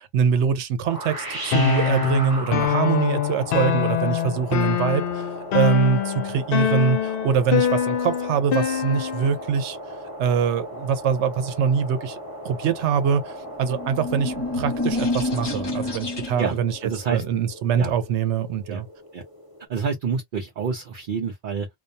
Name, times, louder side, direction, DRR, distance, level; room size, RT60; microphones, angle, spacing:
voice 1, 0.0-5.2 5.5-9.8 10.2-12.2 12.4-16.8 17.1-18.9, right 7 dB, 90° right, 0.9 m, -23 dB
sound 1, 0.8-19.7, right 1 dB, 20° right, 0.8 m, -37 dB
sound 2, 1.5-9.4, left 9 dB, 65° left, 0.7 m, -24 dB
sound 3, 13.5-16.6, left 2 dB, 25° left, 0.7 m, -28 dB
voice 2, 16.4-17.2 17.8-17.9 18.7-18.8 19.1-19.2 19.7-21.7, right 6 dB, 60° right, 0.7 m, -28 dB
2.3 x 2.1 x 2.6 m
omnidirectional pair, 1.1 m